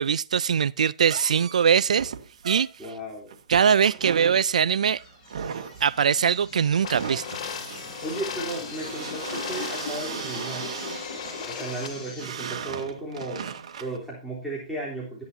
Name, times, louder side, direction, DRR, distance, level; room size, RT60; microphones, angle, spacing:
voice 1, 0.0-2.1 2.4-2.7 3.5-5.0 5.8-7.3, right 7 dB, 80° right, 0.4 m, -22 dB
sound 1, 1.0-14.0, right 7 dB, 60° right, 2.1 m, -38 dB
voice 2, 2.8-3.3 8.0-10.7 11.5-15.2, right 2 dB, ahead, 3.4 m, -35 dB
sound 2, 4.5-12.3, left 4 dB, 30° left, 5.7 m, -41 dB
sound 3, 6.8-11.9, left 8 dB, 55° left, 2.4 m, -37 dB
13.5 x 10.5 x 2.7 m
hypercardioid pair, 155°, 4 cm